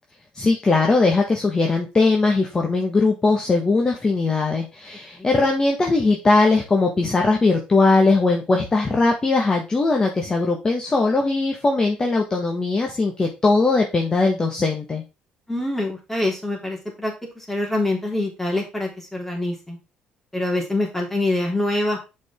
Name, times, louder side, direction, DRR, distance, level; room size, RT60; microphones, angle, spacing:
voice 1, 0.3-15.0, left 3 dB, 25° left, 1 dB, 1.6 m, -20 dB
voice 2, 15.5-19.8 20.3-22.0, left 2 dB, 10° left, -1 dB, 3.6 m, -25 dB
7.3 x 5.3 x 3.7 m, 0.28 s
cardioid pair, 100°, 3 cm